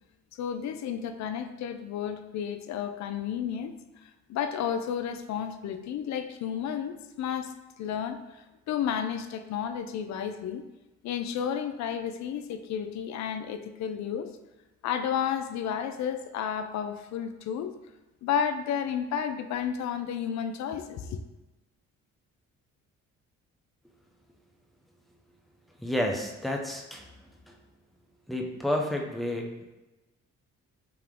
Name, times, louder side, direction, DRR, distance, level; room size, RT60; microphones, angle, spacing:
voice 1, 0.3-3.7 4.0-10.6 11.0-14.3 14.8-17.7 18.2-21.2, left 8 dB, 65° left, 9 dB, 0.4 m, -32 dB
voice 2, 25.8-27.1 27.5-27.6 28.3-29.7, left 1 dB, ahead, 0 dB, 0.6 m, -30 dB
3.7 x 2.8 x 3.5 m, 1.0 s
cardioid pair, 90°, 30 cm